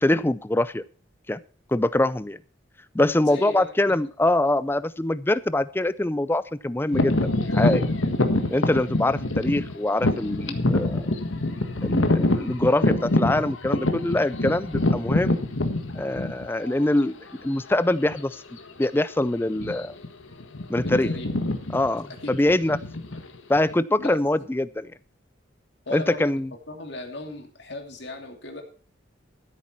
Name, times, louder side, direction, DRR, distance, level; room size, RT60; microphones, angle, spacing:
voice 1, 0.0-0.8 1.3-1.4 1.7-2.4 2.9-7.2 7.5-7.9 8.5-11.1 11.8-15.5 15.9-18.4 18.8-20.0 20.7-21.1 21.7-22.8 23.5-24.9 25.9-26.5, left 1 dB, 10° left, 16 dB, 0.4 m, -24 dB
voice 2, 3.3-3.7 20.8-21.3 22.2-22.6 24.0-24.5 25.9-26.3 26.7-28.6, left 2 dB, 60° left, 3 dB, 2.7 m, -37 dB
sound 1, 6.9-16.7 17.3-17.5 18.1-18.3 18.6-18.8 19.5-20.1 20.3-23.7, left 2 dB, 85° left, 1.7 m, -25 dB
14.5 x 8.4 x 4.5 m, 0.42 s
head